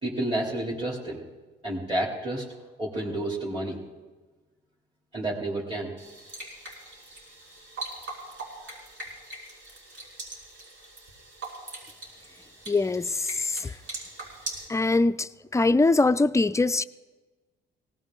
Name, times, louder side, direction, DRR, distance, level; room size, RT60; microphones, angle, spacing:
voice 1, 0.0-1.2 1.6-2.4 2.8-3.8 5.1-5.9, right 1 dB, 25° right, -6 dB, 3.1 m, -30 dB
sound 1, 6.0-14.7, right 2 dB, 70° right, 5.9 m, -41 dB
voice 2, 12.7-13.1 13.4-13.6 14.7-16.8, left 3 dB, 15° left, 13 dB, 0.4 m, -22 dB
19.5 x 18.0 x 3.8 m, 1.3 s
cardioid pair, 90°, 20 cm